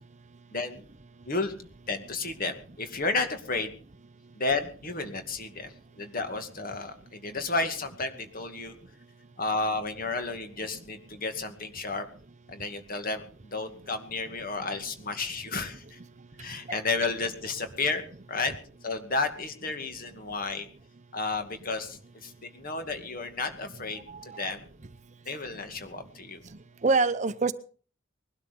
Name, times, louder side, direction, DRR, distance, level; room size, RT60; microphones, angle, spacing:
voice 1, 0.5-0.8 1.3-1.5 1.9-3.7 4.4-8.7 9.4-12.1 12.5-16.0 16.4-18.0 18.3-18.5 18.8-20.7 21.1-24.6 25.3-26.4, left 3 dB, 45° left, 2.3 m, -32 dB
voice 2, 24.1-24.4 26.8-27.5, right 4 dB, 35° right, 0.7 m, -25 dB
20.5 x 12.5 x 5.4 m
head